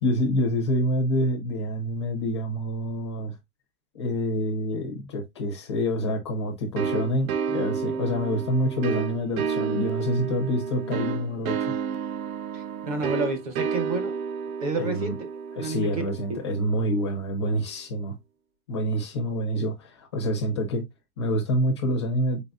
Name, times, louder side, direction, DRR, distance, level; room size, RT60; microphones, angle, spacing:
voice 1, 0.0-3.4 3.9-11.8 14.7-15.2 15.6-18.2 18.7-20.8 21.2-22.4, equal, 20° left, 0.4 m, -27 dB
sound 1, 6.8-17.2, right 6 dB, 70° right, 0.6 m, -31 dB
voice 2, 12.5-14.1 14.6-15.1 15.6-15.9 16.3-16.4, right 3 dB, 25° right, 0.6 m, -29 dB
4.0 x 3.9 x 2.3 m
supercardioid pair, 170°, 44 cm